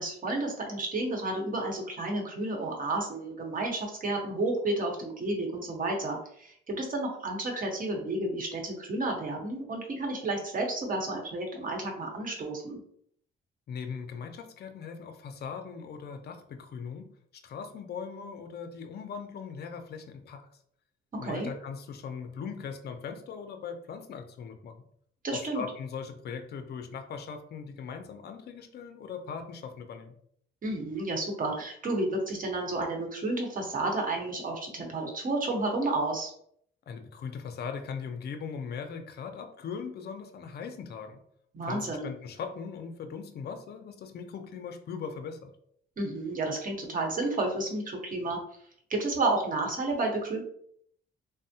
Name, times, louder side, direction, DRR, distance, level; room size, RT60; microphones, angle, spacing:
voice 1, 0.0-12.8 21.2-21.5 25.2-25.6 30.6-36.3 41.5-42.0 46.0-48.4 48.9-50.4, right 2 dB, 45° right, 1 dB, 1.0 m, -31 dB
voice 2, 13.7-17.1 17.4-20.4 21.2-24.8 25.3-30.2 36.9-41.2 41.6-45.5, left 6 dB, 55° left, 6 dB, 0.5 m, -39 dB
3.4 x 2.1 x 2.7 m, 0.65 s
cardioid pair, 90°, 20 cm